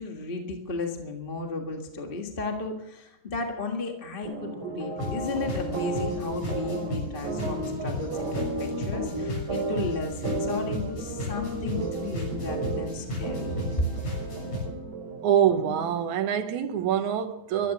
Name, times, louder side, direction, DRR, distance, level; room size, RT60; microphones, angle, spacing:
voice 1, 0.0-13.6, left 3 dB, 25° left, 1.3 m, -34 dB
sound 1, 4.2-16.0, right 2 dB, 35° right, 2.8 m, -34 dB
sound 2, 5.0-14.7, left 1 dB, 80° left, 8.1 m, -35 dB
voice 2, 15.2-17.7, right 9 dB, 85° right, 2.6 m, -25 dB
15.0 x 13.0 x 7.2 m
omnidirectional pair, 3.4 m